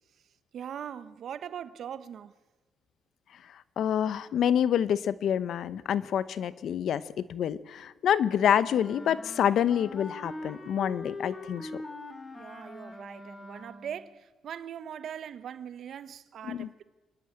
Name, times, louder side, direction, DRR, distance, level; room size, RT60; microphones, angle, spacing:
voice 1, 0.5-2.3 12.3-16.8, right 8 dB, 65° right, 1.1 m, -41 dB
voice 2, 3.8-11.7 16.4-16.7, left 9 dB, 70° left, 0.8 m, -27 dB
Wind instrument woodwind instrument, 8.6-14.0, left 2 dB, 25° left, 2.9 m, -42 dB
27.0 x 11.5 x 8.9 m
cardioid pair, 90°, 0 cm